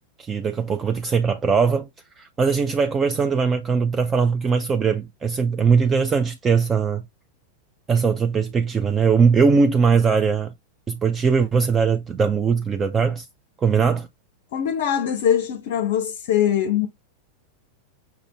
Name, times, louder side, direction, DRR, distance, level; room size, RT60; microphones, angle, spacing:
voice 1, 0.2-1.9 2.2-7.0 7.9-10.5 10.9-13.3 13.6-14.1, right 5 dB, 20° right, 0.4 m, -20 dB
voice 2, 14.5-16.9, left 9 dB, 55° left, 0.5 m, -22 dB
5.8 x 2.5 x 3.2 m
figure-of-eight pair, 90°, 0 cm